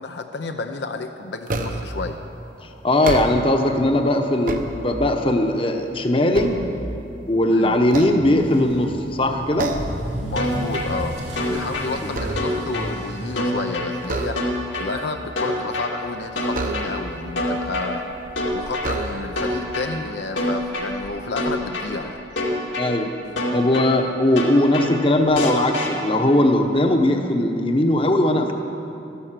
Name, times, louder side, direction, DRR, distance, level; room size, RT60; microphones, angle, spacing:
voice 1, 0.0-2.2 7.5-7.8 10.2-11.2 11.5-14.4 14.8-18.0 18.5-22.2, left 3 dB, 65° left, 6 dB, 0.6 m, -31 dB
sound 1, 1.5-2.0 2.9-3.7 4.2-5.3 5.8-7.3 7.8-8.8 9.6-10.1 10.5-10.7 11.1-12.8 14.0-14.8 16.5-17.3 18.1-18.2 18.8-19.6, right 2 dB, 45° right, 0.9 m, -30 dB
voice 2, 2.6-6.5 7.3-9.7 12.0-12.1 22.8-23.1 23.5-28.5, left 1 dB, 30° left, 4 dB, 1.0 m, -19 dB
Motor vehicle (road) / Accelerating revving vroom, 8.4-23.2 23.5-23.9 24.4-24.5 24.8-24.9 25.2-25.3 26.6-26.7, equal, 90° right, 2.6 m, -37 dB
sound 2, 10.4-10.9 11.4-11.9 12.4-12.9 13.4-13.9 14.4-14.9 15.4-15.9 16.4-16.9 17.4-17.9 18.4-18.9 19.4-19.9 20.4-20.9 21.4-21.9 22.4-22.9 23.4-23.9 24.4-24.9 25.4-25.9, left 1 dB, 80° left, 2.4 m, -25 dB
13.5 x 11.5 x 7.5 m, 2.8 s
head